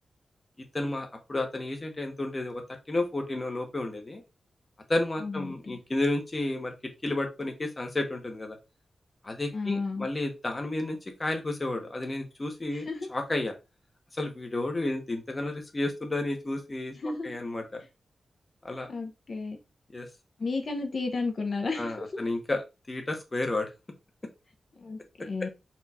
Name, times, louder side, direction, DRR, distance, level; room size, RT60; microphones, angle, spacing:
voice 1, 0.7-4.2 4.9-6.7 7.0-8.6 9.2-13.5 14.1-17.8 18.6-18.9 19.9-20.1 21.8-23.7, left 2 dB, 25° left, 4 dB, 0.9 m, -32 dB
voice 2, 5.2-5.6 9.5-10.1 12.7-13.1 17.0-17.3 18.9-19.6 20.4-22.2 24.8-25.5, left 3 dB, 50° left, 4 dB, 0.8 m, -33 dB
4.3 x 2.4 x 4.2 m, 0.26 s
wide cardioid pair, 120°, 0 cm